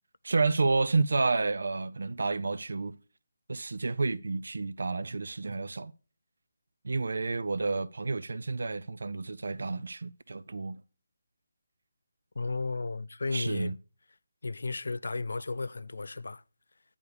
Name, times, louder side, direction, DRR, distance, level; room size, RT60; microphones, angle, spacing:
voice 1, 0.2-3.0 3.5-5.9 6.8-10.8 13.3-13.8, right 3 dB, 60° right, 0.4 m, -30 dB
voice 2, 12.4-13.8 14.4-16.4, left 3 dB, 75° left, 0.4 m, -34 dB
9.3 x 3.5 x 6.7 m
hypercardioid pair, 180°, 0 cm